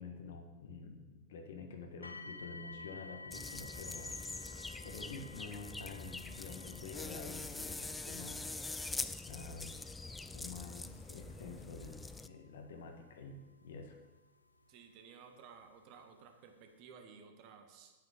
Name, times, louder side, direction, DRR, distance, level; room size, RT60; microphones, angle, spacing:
voice 1, 0.0-4.5 4.8-8.6 9.3-9.8 10.3-14.0, left 4 dB, 60° left, 5 dB, 1.5 m, -49 dB
sound 1, 2.0-14.9 15.7-15.8 16.4-16.5, left 3 dB, 80° left, 0.7 m, -54 dB
sound 2, 3.3-12.3, left 3 dB, 10° left, 0.4 m, -44 dB
voice 2, 14.7-17.9, right 6 dB, 45° right, 5 dB, 1.4 m, -56 dB
9.5 x 8.6 x 5.0 m, 1.2 s
figure-of-eight pair, 90°, 0 cm